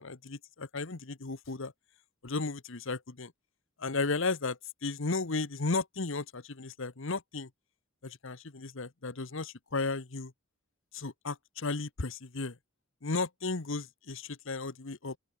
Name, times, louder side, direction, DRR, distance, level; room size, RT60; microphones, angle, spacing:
voice 1, 0.0-1.7 2.2-3.3 3.8-7.5 8.0-10.3 10.9-12.6 13.0-15.2, left 3 dB, 65° left, 1.2 m, -34 dB
open air
head